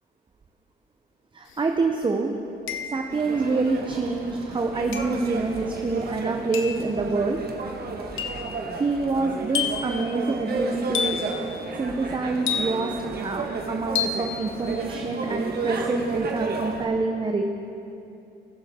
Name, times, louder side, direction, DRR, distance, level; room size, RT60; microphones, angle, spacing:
voice 1, 1.3-7.4 8.2-8.3 8.7-11.5 11.8-17.4, right 3 dB, 25° right, 3 dB, 0.7 m, -27 dB
sound 1, 1.5-1.6 2.7-3.2 4.9-5.3 6.5-6.9 8.2-8.5 9.5-10.0 10.9-11.4 12.5-13.0 14.0-14.3, left 6 dB, 75° left, 0.9 m, -29 dB
sound 2, 3.1-16.9, right 3 dB, 50° right, 1.4 m, -32 dB
20.0 x 6.8 x 3.6 m, 2.9 s
cardioid pair, 90°, 20 cm